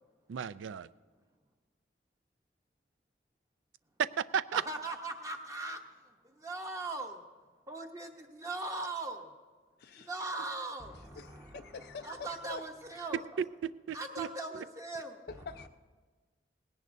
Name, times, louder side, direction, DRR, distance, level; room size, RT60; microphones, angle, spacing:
voice 1, 0.3-0.9 4.0-4.6 13.4-14.3 14.5-14.6, right 7 dB, 85° right, 15 dB, 0.4 m, -34 dB
voice 2, 4.5-5.8 6.2-7.3 7.7-9.3 10.0-13.2 13.9-15.2, right 2 dB, 15° right, 3 dB, 0.8 m, -40 dB
voice 3, 9.8-10.3 11.2-12.6 15.3-15.7, left 5 dB, 55° left, 8 dB, 0.3 m, -46 dB
18.5 x 17.0 x 2.6 m, 1.4 s
head